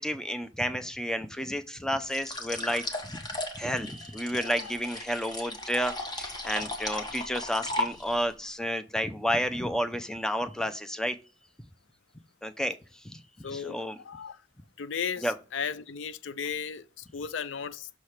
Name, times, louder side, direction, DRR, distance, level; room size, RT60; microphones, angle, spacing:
voice 1, 0.0-3.3 3.5-11.2 12.4-13.2 13.5-14.0 15.2-15.3, equal, 5° left, 0.5 m, -31 dB
sound 1, 2.1-8.3, left 2 dB, 25° left, 1.1 m, -36 dB
voice 2, 13.4-14.4 14.8-17.9, left 6 dB, 80° left, 0.4 m, -36 dB
6.4 x 3.2 x 5.7 m
head